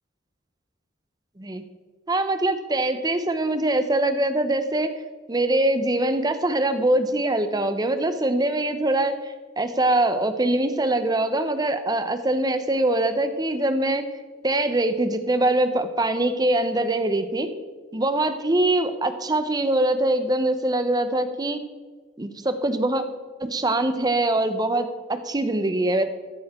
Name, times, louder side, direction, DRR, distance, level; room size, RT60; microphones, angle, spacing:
voice 1, 2.1-4.9 5.3-14.0 14.4-17.5 17.9-21.6 22.2-23.0 23.4-26.0, right 1 dB, 20° right, 9 dB, 0.7 m, -23 dB
13.5 x 11.0 x 3.7 m, 1.4 s
head